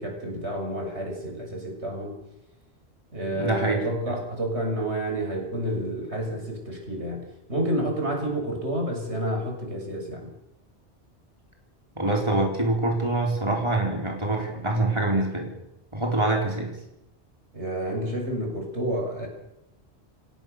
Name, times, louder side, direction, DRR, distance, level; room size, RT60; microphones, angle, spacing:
voice 1, 0.0-2.2 3.1-10.3 17.5-19.3, right 1 dB, 80° right, 2 dB, 6.9 m, -29 dB
voice 2, 3.3-3.8 4.1-4.2 12.0-15.5 15.9-16.7, right 2 dB, 25° right, 0 dB, 4.5 m, -25 dB
30.0 x 17.0 x 6.9 m, 0.89 s
omnidirectional pair, 1.1 m